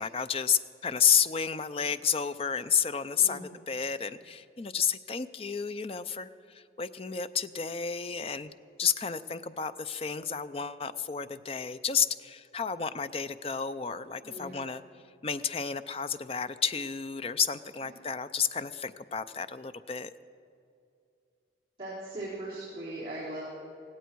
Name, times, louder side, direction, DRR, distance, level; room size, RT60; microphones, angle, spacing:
voice 1, 0.0-3.4 3.7-8.5 8.8-14.8 15.2-20.1, left 7 dB, 30° left, 12 dB, 0.4 m, -31 dB
voice 2, 14.2-14.7 17.9-18.0 21.8-23.4, right 1 dB, 30° right, -11 dB, 4.2 m, -39 dB
17.5 x 17.0 x 4.6 m, 2.5 s
head